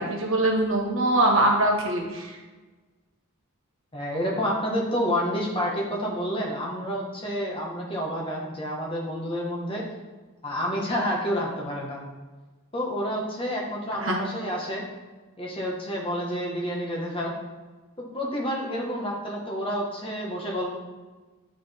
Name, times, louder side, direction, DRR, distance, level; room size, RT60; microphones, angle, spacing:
voice 1, 0.0-2.3 14.0-14.2, right 1 dB, 65° right, 0 dB, 1.5 m, -23 dB
voice 2, 3.9-9.9 10.4-12.0 12.7-14.8 15.4-17.3 18.0-20.8, equal, 25° left, -2 dB, 1.3 m, -29 dB
10.5 x 3.9 x 3.5 m, 1.3 s
head